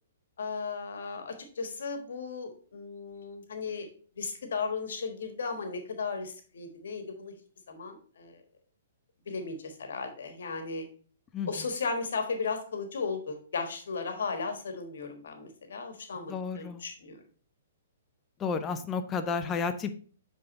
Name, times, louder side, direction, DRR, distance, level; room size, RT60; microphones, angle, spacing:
voice 1, 0.4-3.9 4.2-7.3 7.7-8.4 9.3-10.8 11.5-17.2, left 4 dB, 65° left, 6 dB, 1.3 m, -35 dB
voice 2, 16.3-16.8 18.4-19.9, left 5 dB, 20° left, 9 dB, 0.6 m, -31 dB
7.6 x 3.7 x 4.0 m, 0.41 s
figure-of-eight pair, 120°, 0 cm